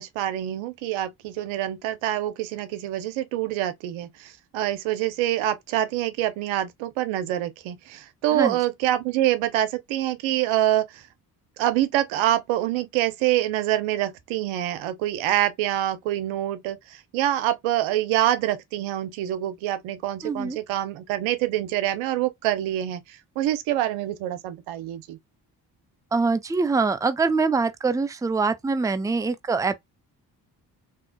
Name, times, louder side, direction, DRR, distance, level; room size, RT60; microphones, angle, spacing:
voice 1, 0.0-11.1 11.6-25.2, right 13 dB, 80° right, 0.7 m, -26 dB
voice 2, 20.2-20.6 26.1-29.8, right 4 dB, 10° right, 0.5 m, -24 dB
3.6 x 2.8 x 2.2 m
hypercardioid pair, 45°, 46 cm